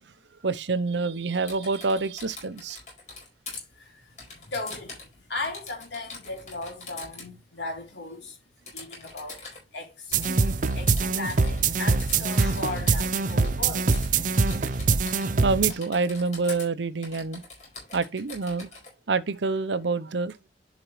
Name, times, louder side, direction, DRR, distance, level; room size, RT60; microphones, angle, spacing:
voice 1, 0.4-2.8 14.6-14.7 15.1-15.2 15.4-17.4 17.9-18.7 19.1-20.3, right 4 dB, 85° right, 0.7 m, -27 dB
Typing, 1.3-3.6 4.2-5.1 5.4-7.3 8.7-9.6 10.1-11.7 12.0-13.6 13.9-14.1 14.3-15.4 15.7-16.7 17.0-18.9, left 3 dB, 40° left, 4.5 m, -43 dB
voice 2, 3.6-8.4 8.7-9.4 9.7-10.1 10.7-14.7, left 2 dB, 90° left, 3.3 m, -37 dB
sound 1, 10.1-15.7, right 4 dB, 45° right, 0.5 m, -24 dB
11.0 x 5.0 x 3.1 m
head